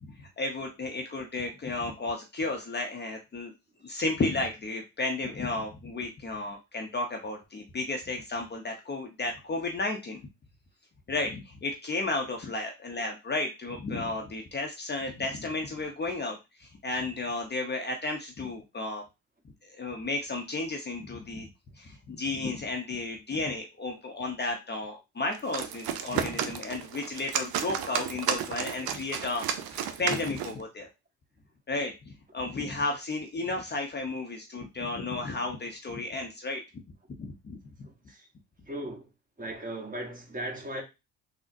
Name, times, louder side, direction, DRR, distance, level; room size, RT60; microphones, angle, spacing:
voice 1, 0.0-3.5 3.8-10.2 11.1-19.0 19.6-21.5 21.8-30.9 31.7-36.6 37.2-37.6, left 2 dB, 25° left, 0.6 m, -33 dB
sound 1, 25.3-30.6, right 8 dB, 60° right, 0.6 m, -33 dB
voice 2, 37.8-38.3 38.7-39.1 39.4-40.8, right 1 dB, 20° right, 1.0 m, -37 dB
3.8 x 2.1 x 2.6 m
supercardioid pair, 65°, 41 cm